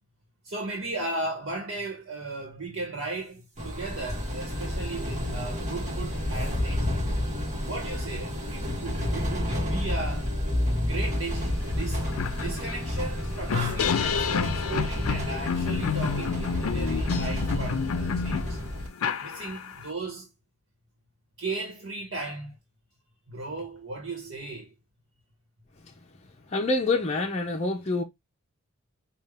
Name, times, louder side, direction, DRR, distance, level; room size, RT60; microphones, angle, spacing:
voice 1, 0.4-7.0 7.7-10.3 10.8-12.1 12.4-18.6 19.2-20.3 21.4-22.6 23.3-24.7, right 2 dB, 55° right, 1.3 m, -36 dB
sound 1, 3.6-18.9, left 1 dB, 35° right, 1.4 m, -30 dB
sound 2, 11.4-11.5 11.8-19.9, left 6 dB, 80° left, 0.5 m, -29 dB
voice 2, 26.5-28.0, left 3 dB, 30° left, 0.6 m, -26 dB
5.3 x 2.4 x 3.3 m
head